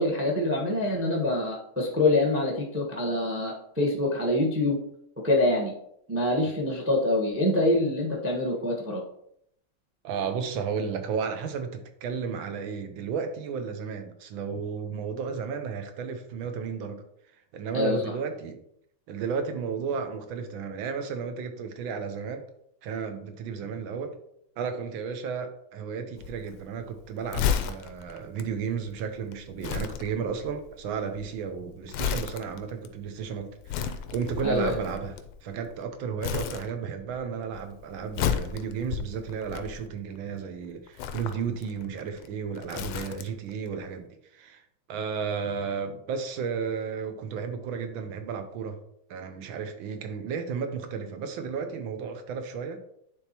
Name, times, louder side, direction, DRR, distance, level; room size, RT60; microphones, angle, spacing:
voice 1, 0.0-4.8 5.2-5.7 6.1-9.0 17.7-18.0 34.4-34.8, left 1 dB, 15° right, -1 dB, 0.5 m, -25 dB
voice 2, 10.0-17.0 17.5-18.6 19.1-22.5 22.8-24.1 24.6-35.1 35.4-44.6 44.9-48.8 49.1-52.8, right 6 dB, 75° right, 7 dB, 1.4 m, -33 dB
Crumpling crinkling, 26.2-35.8 36.2-37.2 37.4-40.2 40.9-43.5 43.8-43.9, left 8 dB, 90° left, 1.5 m, -33 dB
10.0 x 3.5 x 2.9 m, 0.73 s
omnidirectional pair, 2.3 m